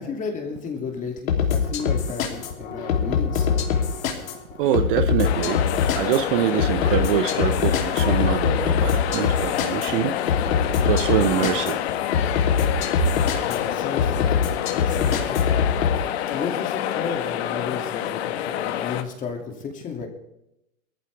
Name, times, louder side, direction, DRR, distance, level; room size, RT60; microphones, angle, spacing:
voice 1, 0.0-3.6 13.4-14.4 14.7-15.5 16.3-20.1, left 5 dB, 20° left, 3 dB, 2.7 m, -33 dB
sound 1, 1.3-16.0, left 7 dB, 75° left, 3.2 m, -24 dB
voice 2, 4.6-5.6 6.0-10.2 10.8-11.8 13.0-13.1, right 11 dB, 40° right, 10 dB, 0.8 m, -24 dB
sound 2, 5.2-19.0, left 11 dB, 50° left, 1.4 m, -27 dB
20.0 x 14.0 x 3.5 m, 0.85 s
hypercardioid pair, 150°, 41 cm